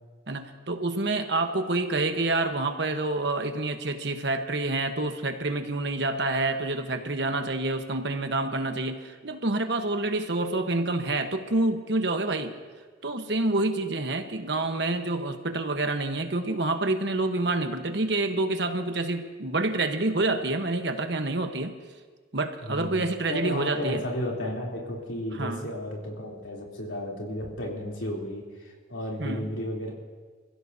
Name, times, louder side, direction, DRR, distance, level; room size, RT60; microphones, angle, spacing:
voice 1, 0.3-12.5 13.0-21.7 22.3-24.0 25.3-25.7 29.2-29.5, right 2 dB, 65° right, 6 dB, 1.2 m, -28 dB
voice 2, 22.6-23.0 23.3-29.9, left 1 dB, 85° left, -2 dB, 3.3 m, -33 dB
27.0 x 15.5 x 2.8 m, 1.5 s
head